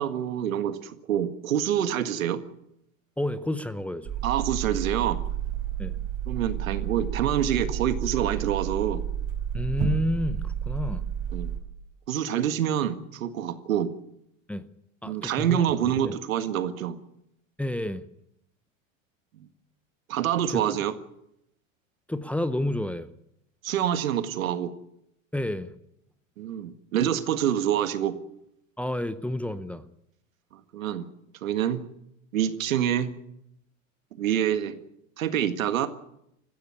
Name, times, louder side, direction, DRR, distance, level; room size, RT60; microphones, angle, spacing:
voice 1, 0.0-2.4 4.2-5.2 6.3-9.0 11.3-11.5 12.1-13.9 15.0-17.0 19.4-19.5 20.1-20.9 23.6-24.7 26.4-28.1 30.7-31.1 31.4-31.8 32.3-33.1 34.2-34.8 35.2-35.9, right 10 dB, 90° right, 10 dB, 1.9 m, -26 dB
voice 2, 3.2-4.1 5.8-6.0 9.5-11.0 14.5-14.7 15.0-15.7 16.0-16.2 17.6-18.1 20.5-20.6 22.1-23.1 25.3-25.7 28.8-29.8, left 1 dB, 5° left, 11 dB, 0.7 m, -30 dB
sound 1, 4.0-11.6, right 9 dB, 40° right, 5.0 m, -31 dB
20.5 x 15.5 x 9.8 m, 0.79 s
supercardioid pair, 130°, 39 cm